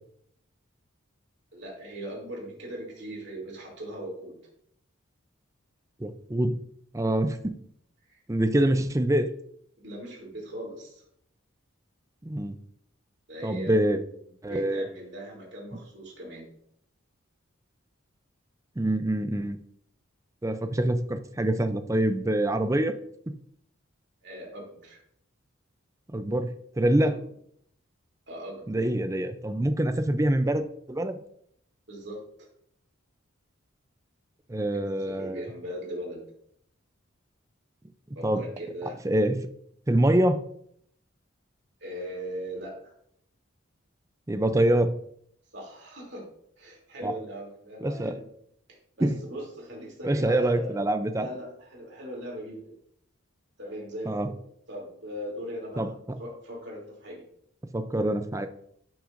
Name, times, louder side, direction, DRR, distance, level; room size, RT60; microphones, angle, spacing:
voice 1, 1.5-4.4 9.8-11.0 13.3-14.0 14.5-16.5 24.2-25.0 27.0-27.2 28.3-28.8 31.9-32.5 34.5-36.2 38.1-39.0 41.8-42.7 45.5-46.2 46.6-48.2 49.0-50.8 51.1-52.7 53.6-54.3 54.7-55.9 56.2-57.2, equal, 55° right, -2 dB, 2.9 m, -39 dB
voice 2, 6.0-6.6 6.9-7.5 8.3-9.3 12.2-12.6 13.4-14.0 14.4-14.9 18.8-19.6 20.4-23.0 23.3-23.4 26.1-27.1 28.7-31.2 34.5-35.5 38.2-38.4 39.0-39.4 39.9-40.4 44.3-44.9 47.0-47.1 47.8-48.2 49.0-49.2 50.0-51.3 54.1-54.3 55.8-56.2 57.7-58.5, right 1 dB, 15° right, 9 dB, 0.4 m, -25 dB
11.5 x 6.0 x 2.6 m, 0.68 s
head